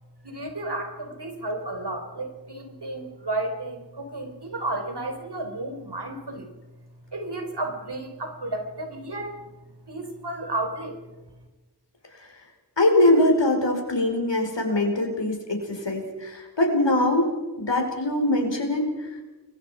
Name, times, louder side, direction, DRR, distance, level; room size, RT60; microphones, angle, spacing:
voice 1, 0.2-6.5 7.1-9.5 9.9-11.0, right 2 dB, 65° right, 6 dB, 3.8 m, -32 dB
voice 2, 12.8-17.3 17.6-18.9, left 1 dB, 75° left, 3 dB, 5.1 m, -22 dB
29.5 x 22.5 x 5.2 m, 1.2 s
wide cardioid pair, 45°, 44 cm